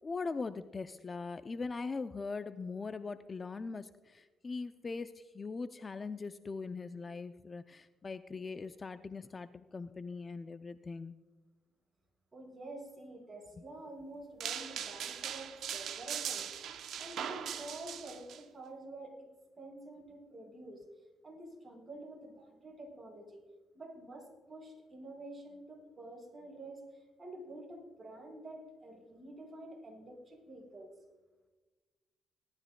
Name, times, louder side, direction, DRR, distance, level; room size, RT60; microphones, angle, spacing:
voice 1, 0.0-11.2, left 4 dB, 30° left, 11 dB, 0.4 m, -41 dB
voice 2, 12.3-16.4 17.0-19.3 19.6-20.8 21.2-23.4 23.7-30.9, right 1 dB, 30° right, 0 dB, 4.5 m, -48 dB
sound 1, 14.4-18.4, right 9 dB, 75° right, 0.7 m, -40 dB
18.5 x 12.5 x 2.2 m, 1.2 s
cardioid pair, 90°, 0 cm